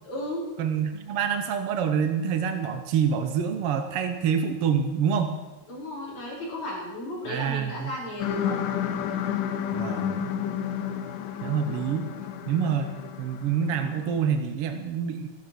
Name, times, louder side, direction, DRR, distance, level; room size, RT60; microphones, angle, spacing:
voice 1, 0.0-0.5 5.7-8.6 11.7-11.9, left 1 dB, 60° left, -5 dB, 5.8 m, -34 dB
voice 2, 0.6-5.4 7.3-7.9 9.7-10.3 11.4-12.1 12.5-12.9 13.2-15.3, right 7 dB, 70° right, 7 dB, 1.4 m, -26 dB
sound 1, 8.2-14.2, left 9 dB, 90° left, 2.7 m, -31 dB
15.0 x 13.5 x 6.1 m, 1.1 s
omnidirectional pair, 3.7 m